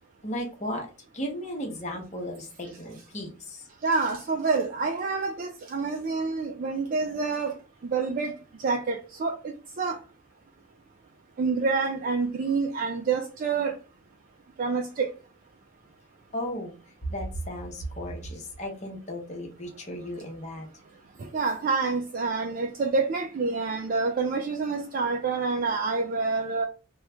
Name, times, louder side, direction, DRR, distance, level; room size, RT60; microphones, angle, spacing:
voice 1, 0.2-0.9 1.1-3.6 16.3-16.7 17.1-20.7, equal, 35° left, 1 dB, 0.9 m, -35 dB
voice 2, 3.8-7.5 7.9-8.3 8.6-9.4 9.8-10.0 11.4-13.8 14.6-15.1 21.3-26.7, right 4 dB, 45° right, 3 dB, 0.3 m, -27 dB
3.1 x 2.3 x 3.3 m, 0.34 s
head